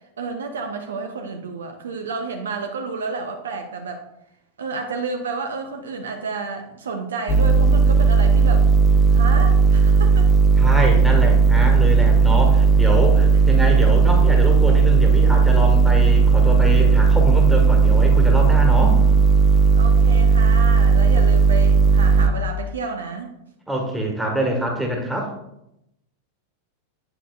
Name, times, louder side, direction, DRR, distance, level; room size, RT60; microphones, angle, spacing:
voice 1, 0.2-4.0 4.6-8.7 9.1-10.3 19.8-23.3, right 4 dB, 65° right, 5 dB, 0.7 m, -30 dB
sound 1, 7.3-22.3, right 5 dB, 25° left, 0.7 m, -15 dB
voice 2, 10.6-19.0 21.1-21.2 23.7-25.3, equal, 5° right, 0 dB, 1.5 m, -25 dB
8.5 x 6.9 x 2.4 m, 0.83 s
figure-of-eight pair, 90°, 0 cm